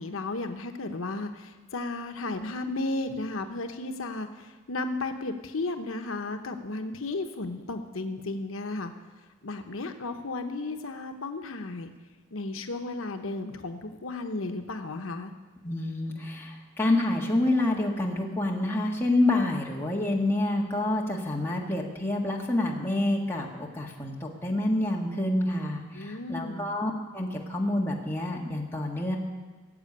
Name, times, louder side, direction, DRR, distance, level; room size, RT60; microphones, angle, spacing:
voice 1, 0.0-8.9 9.4-11.9 12.3-15.3 25.9-26.7, left 2 dB, 80° left, 6 dB, 1.0 m, -34 dB
voice 2, 15.6-29.2, left 1 dB, 10° left, -2 dB, 1.8 m, -28 dB
17.0 x 7.6 x 8.7 m, 1.3 s
head